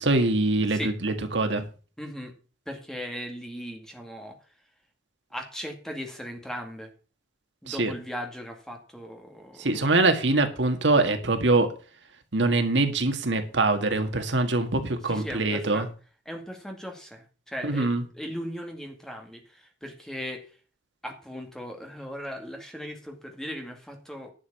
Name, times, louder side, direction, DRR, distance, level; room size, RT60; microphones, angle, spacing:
voice 1, 0.0-1.6 7.7-7.9 9.6-11.7 12.3-15.9 17.6-18.0, right 2 dB, 75° right, 1.8 m, -24 dB
voice 2, 2.0-2.3 2.7-4.4 5.3-6.9 7.6-9.9 15.1-15.9 16.3-17.9 18.1-20.5 21.0-24.3, equal, 5° left, 2.2 m, -38 dB
11.0 x 6.5 x 7.0 m
head